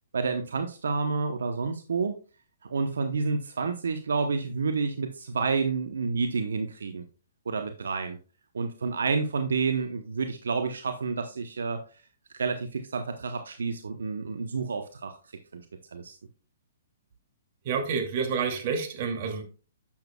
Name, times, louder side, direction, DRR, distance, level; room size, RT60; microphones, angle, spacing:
voice 1, 0.1-2.1 2.7-7.0 7.5-8.2 8.5-11.8 12.3-15.2 15.5-15.6 15.9-16.2, right 4 dB, 80° right, 7 dB, 0.9 m, -29 dB
voice 2, 17.6-19.4, right 5 dB, 45° right, 3 dB, 2.5 m, -29 dB
10.5 x 7.3 x 2.3 m, 0.35 s
hypercardioid pair, 135°, 0 cm